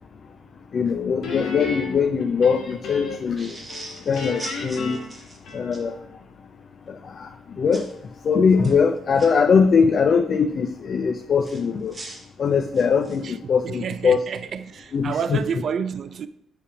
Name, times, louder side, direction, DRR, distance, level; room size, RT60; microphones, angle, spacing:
voice 1, 0.7-3.6 4.1-5.0 5.5-6.0 6.9-7.3 7.6-7.9 8.2-11.9 12.4-14.2 14.9-15.4, left 6 dB, 50° left, 0.4 m, -21 dB
Guitar, 1.2-3.4 3.7-6.0, left 4 dB, 75° left, 1.6 m, -34 dB
sound 1, 3.4-5.8 7.7-7.9 8.5-9.3 11.4-13.3, right 2 dB, 15° right, 1.5 m, -40 dB
voice 2, 13.6-16.3, right 7 dB, 55° right, 0.4 m, -29 dB
7.4 x 3.4 x 4.8 m
cardioid pair, 90°, 0 cm